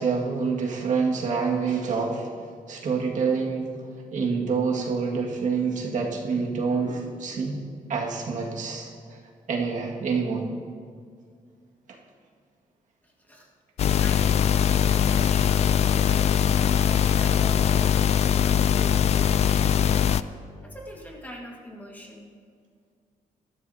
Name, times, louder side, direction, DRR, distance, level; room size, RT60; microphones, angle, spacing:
voice 1, 0.0-2.3 2.7-3.7 4.1-7.6 7.9-9.2 9.5-10.5 13.9-14.0, right 5 dB, 60° right, -1 dB, 1.9 m, -27 dB
voice 2, 13.0-13.5 14.0-14.7 15.1-16.3 16.7-20.2 20.6-22.3, equal, 10° left, -1 dB, 1.7 m, -43 dB
sound 1, 13.8-20.2, left 9 dB, 50° left, 0.4 m, -21 dB
20.5 x 13.5 x 2.8 m, 2.1 s
wide cardioid pair, 160°, 14 cm